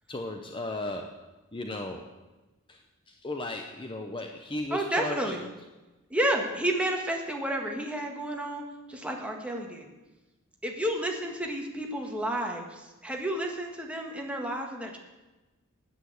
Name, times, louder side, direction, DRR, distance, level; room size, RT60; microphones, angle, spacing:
voice 1, 0.1-1.1 1.5-2.0 2.7-2.8 3.2-5.2, left 2 dB, 25° left, 4 dB, 0.8 m, -35 dB
voice 2, 4.7-5.5 6.1-8.6 8.9-9.9 10.6-15.0, right 1 dB, 5° right, 1 dB, 1.7 m, -31 dB
9.8 x 8.8 x 8.0 m, 1.1 s
head